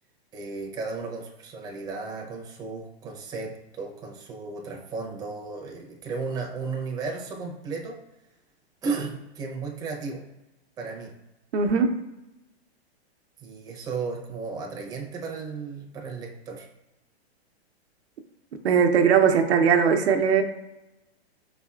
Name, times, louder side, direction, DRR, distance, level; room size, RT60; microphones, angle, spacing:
voice 1, 0.3-8.0 8.8-10.2 10.8-11.1 13.4-16.7, right 4 dB, 10° right, -1 dB, 0.6 m, -34 dB
voice 2, 11.5-11.9 18.6-20.4, right 6 dB, 75° right, 6 dB, 0.7 m, -19 dB
5.4 x 4.2 x 2.4 m, 0.95 s
hypercardioid pair, 145°, 33 cm